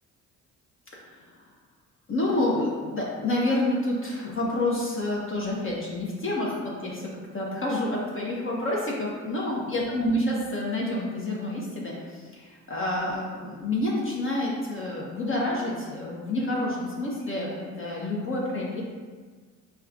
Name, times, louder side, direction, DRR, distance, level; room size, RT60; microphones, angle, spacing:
voice 1, 0.9-1.3 2.1-7.0 7.3-18.8, left 1 dB, 35° left, -4 dB, 0.7 m, -28 dB
4.3 x 2.2 x 2.5 m, 1.5 s
supercardioid pair, 60°, 35 cm